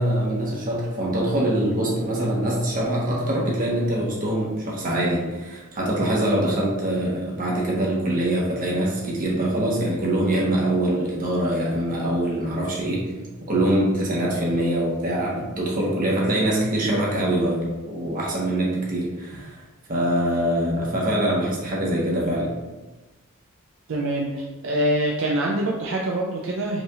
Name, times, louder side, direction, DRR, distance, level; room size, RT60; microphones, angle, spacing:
voice 1, 0.0-13.1 13.4-19.6 19.9-22.5, right 1 dB, 40° right, -4 dB, 1.1 m, -24 dB
voice 2, 23.9-26.8, right 1 dB, 60° right, -2 dB, 0.4 m, -25 dB
5.1 x 3.3 x 2.4 m, 1.2 s
head